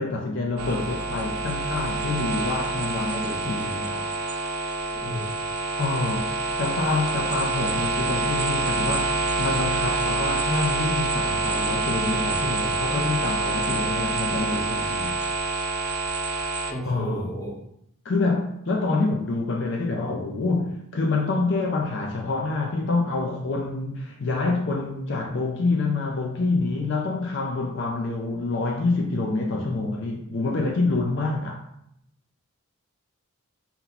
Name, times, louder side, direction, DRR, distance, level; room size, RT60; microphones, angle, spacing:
voice 1, 0.0-4.1 5.8-15.2 16.9-17.3 18.0-31.6, left 3 dB, 55° left, 0.4 m, -27 dB
sound 1, 0.6-16.7, right 3 dB, 85° right, 0.5 m, -27 dB
voice 2, 4.9-5.3 16.7-17.5, equal, 15° left, 0.7 m, -33 dB
4.3 x 2.2 x 3.9 m
head